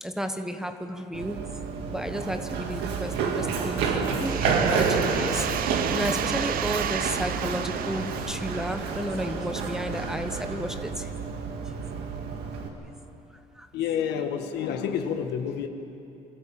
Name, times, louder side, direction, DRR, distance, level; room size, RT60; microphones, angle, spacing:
voice 1, 0.0-1.4 1.9-10.9 13.6-13.7, equal, 5° right, 7 dB, 1.1 m, -32 dB
Run, 1.1-12.7, right 5 dB, 85° right, 2.1 m, -29 dB
sound 1, 4.2-9.7, right 10 dB, 60° right, 0.6 m, -34 dB
voice 2, 13.7-15.7, left 8 dB, 85° left, 6 dB, 1.6 m, -29 dB
26.0 x 13.5 x 7.6 m, 2.9 s
cardioid pair, 110°, 17 cm